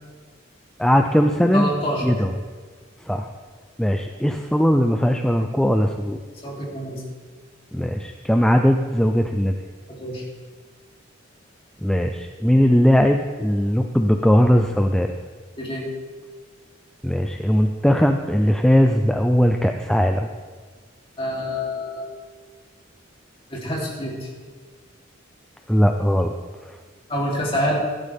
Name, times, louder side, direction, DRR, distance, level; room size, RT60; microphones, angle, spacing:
voice 1, 0.8-1.7 2.0-2.3 3.1-3.3 3.8-6.2 7.7-9.6 11.8-15.1 17.0-20.3 25.7-26.3, equal, 5° left, 4 dB, 0.4 m, -19 dB
voice 2, 1.5-2.1 6.4-7.0 9.9-10.2 15.6-15.9 21.2-22.1 23.5-24.3 27.1-27.7, equal, 30° left, -4 dB, 3.2 m, -26 dB
15.5 x 12.0 x 3.5 m, 1.5 s
head